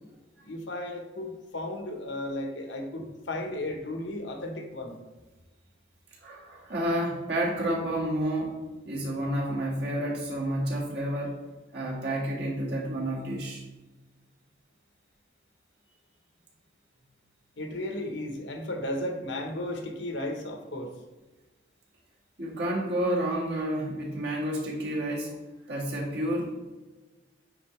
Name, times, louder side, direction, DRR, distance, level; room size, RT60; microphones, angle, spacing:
voice 1, 0.4-5.0 17.6-20.9, left 1 dB, 85° left, 3 dB, 1.1 m, -34 dB
voice 2, 6.2-8.6 8.9-11.4 11.7-13.6 22.4-25.4 25.7-26.6, right 1 dB, 60° right, -4 dB, 1.9 m, -30 dB
9.1 x 3.9 x 3.2 m, 1.2 s
head